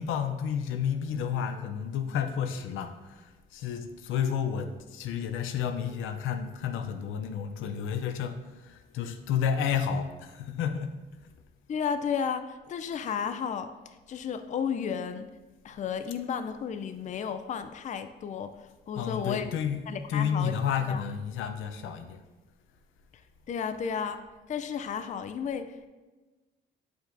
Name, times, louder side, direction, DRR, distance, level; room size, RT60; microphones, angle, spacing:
voice 1, 0.0-10.9 19.0-19.8 20.1-22.2, left 7 dB, 85° left, 8 dB, 0.6 m, -31 dB
voice 2, 11.7-13.7 14.1-15.3 15.6-19.5 19.9-20.6 20.9-21.0 23.1-23.2 23.5-25.9, left 7 dB, 40° left, 10 dB, 0.4 m, -33 dB
8.9 x 4.7 x 2.6 m, 1.2 s
cardioid pair, 90°, 20 cm